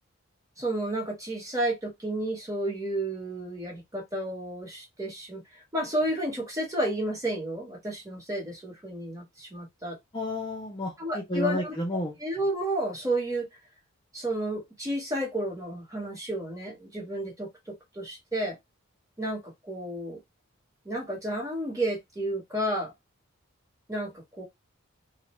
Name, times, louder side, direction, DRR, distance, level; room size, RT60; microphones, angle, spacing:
voice 1, 0.6-10.0 11.0-11.7 12.2-13.5 14.1-17.5 17.9-18.6 19.2-20.2 20.8-22.9 23.9-24.4, right 1 dB, 15° right, 1.0 m, -31 dB
voice 2, 10.1-12.2, left 1 dB, 20° left, 0.5 m, -31 dB
2.4 x 2.1 x 2.9 m
head